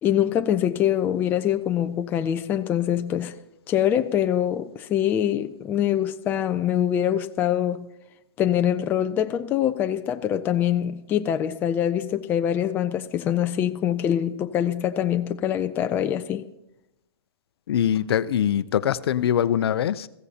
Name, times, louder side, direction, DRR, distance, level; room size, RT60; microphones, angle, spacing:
voice 1, 0.0-3.3 3.7-7.9 8.4-16.4, left 10 dB, 15° left, 0.4 m, -24 dB
voice 2, 17.7-20.1, left 10 dB, 65° left, 0.6 m, -23 dB
21.5 x 15.0 x 2.8 m
hypercardioid pair, 155°, 14 cm